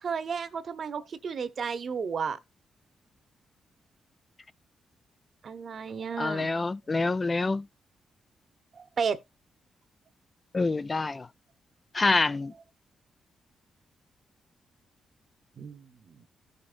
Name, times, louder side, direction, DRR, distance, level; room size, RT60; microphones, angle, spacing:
voice 1, 0.0-2.4 5.4-6.5 8.7-9.2 15.6-16.3, right 6 dB, 60° right, 1.0 m, -33 dB
voice 2, 6.2-7.7 10.5-11.3 11.9-12.5, left 3 dB, 30° left, 0.5 m, -26 dB
14.5 x 5.3 x 2.5 m
cardioid pair, 75°, 0 cm